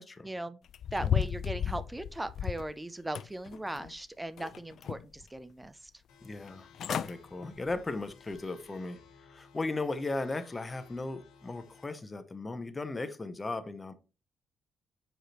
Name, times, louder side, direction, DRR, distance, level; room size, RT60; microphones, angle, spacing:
voice 1, 0.2-5.9, right 1 dB, 10° right, 0.4 m, -39 dB
sound 1, 0.7-2.7 3.2-4.0 4.4-5.2 5.6-5.7 6.5-6.6 6.8-7.1 7.6-7.8 8.3-8.4, left 9 dB, 65° left, 0.3 m, -34 dB
sound 2, 6.1-11.8, left 6 dB, 90° left, 1.6 m, -58 dB
voice 2, 6.2-9.0 9.3-13.9, left 3 dB, 25° left, 0.8 m, -37 dB
6.6 x 4.8 x 3.0 m
cardioid pair, 90°, 0 cm